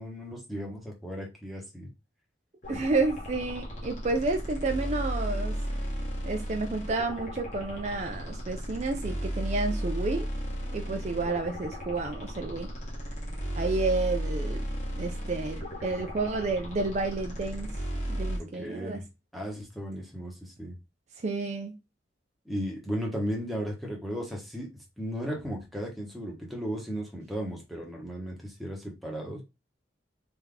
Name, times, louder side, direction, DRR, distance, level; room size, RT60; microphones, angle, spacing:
voice 1, 0.0-1.9 18.4-19.1 19.3-20.8 22.4-29.4, equal, ahead, 1.0 m, -35 dB
sound 1, 2.6-18.4, equal, 40° left, 1.4 m, -34 dB
voice 2, 2.7-5.6 6.2-10.3 10.7-12.7 13.6-14.7 14.9-17.7 18.1-19.0 21.2-21.7, right 3 dB, 40° right, 0.4 m, -30 dB
3.5 x 2.8 x 3.8 m
head